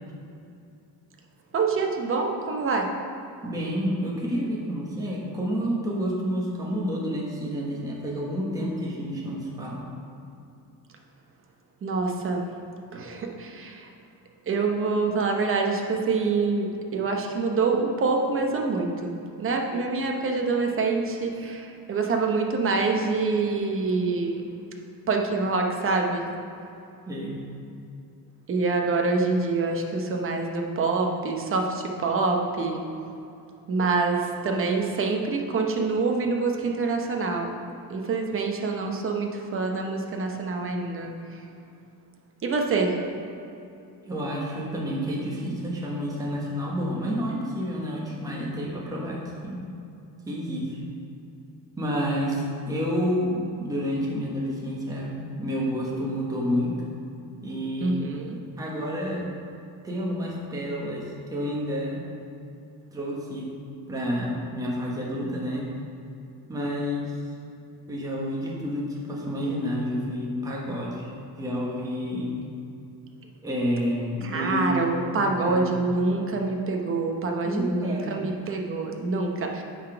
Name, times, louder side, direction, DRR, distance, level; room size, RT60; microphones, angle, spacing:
voice 1, 1.5-2.9 11.8-12.5 12.9-13.9 14.5-24.3 25.1-26.2 28.5-32.8 33.7-37.6 37.9-41.1 42.4-42.9 57.8-58.4 74.2-79.6, right 3 dB, 30° right, 2 dB, 0.8 m, -26 dB
voice 2, 3.4-9.8 27.1-27.4 44.0-49.6 50.2-50.8 51.8-56.8 57.4-58.0 58.6-59.3 59.8-62.0 62.9-63.5 63.9-65.7 66.5-67.1 67.9-71.1 71.3-72.3 73.4-74.8 75.2-75.7 77.4-78.3, equal, 10° right, -4 dB, 1.1 m, -29 dB
8.3 x 4.1 x 5.7 m, 2.6 s
cardioid pair, 150°, 40 cm